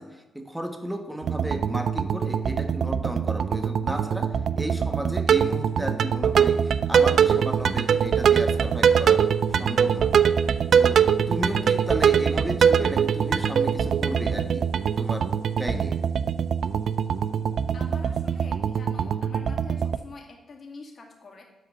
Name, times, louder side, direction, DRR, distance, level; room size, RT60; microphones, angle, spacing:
voice 1, 0.0-10.1 10.7-16.0, equal, 5° right, 6 dB, 1.3 m, -33 dB
sound 1, 1.2-20.0, right 7 dB, 65° right, 0.4 m, -23 dB
sound 2, 7.1-14.8, left 1 dB, 10° left, 2.4 m, -45 dB
voice 2, 17.7-21.4, left 3 dB, 50° left, 1 dB, 2.2 m, -45 dB
7.6 x 4.9 x 6.9 m, 1.1 s
cardioid pair, 65°, 0 cm